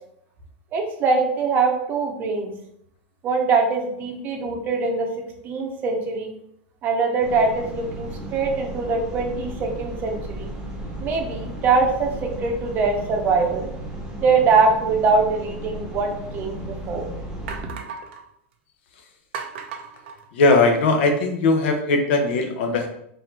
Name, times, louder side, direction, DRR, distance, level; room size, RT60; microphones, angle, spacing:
voice 1, 0.7-2.5 3.2-5.1 5.4-6.3 6.8-10.5 11.0-13.7 14.2-17.1, right 4 dB, 30° right, 2 dB, 0.7 m, -22 dB
sound 1, 7.2-17.6, right 1 dB, 5° right, 0.9 m, -35 dB
sound 2, 16.1-16.2 16.8-16.9 17.5-18.2 19.3-20.8, right 6 dB, 80° right, 0.6 m, -36 dB
voice 2, 20.3-22.9, left 3 dB, 75° left, 4 dB, 0.9 m, -19 dB
4.0 x 2.7 x 4.4 m, 0.74 s
supercardioid pair, 160°, 6 cm